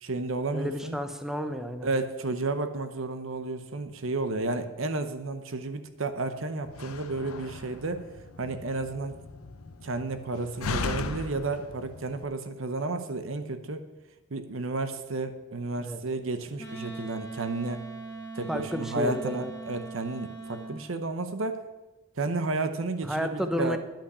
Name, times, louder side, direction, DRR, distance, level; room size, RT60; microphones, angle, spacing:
voice 1, 0.0-1.0 1.8-8.1 8.4-9.2 9.8-13.9 14.3-17.9 18.3-21.7 22.2-23.8, right 3 dB, 65° right, 9 dB, 0.8 m, -32 dB
voice 2, 0.5-1.9 15.8-16.0 18.5-19.5 23.1-23.8, equal, ahead, 7 dB, 0.6 m, -31 dB
Slam, 6.6-12.2, left 4 dB, 80° left, 0.7 m, -38 dB
Wind instrument woodwind instrument, 16.6-20.7, right 3 dB, 15° left, 2.2 m, -40 dB
10.5 x 5.8 x 8.2 m, 1.1 s
head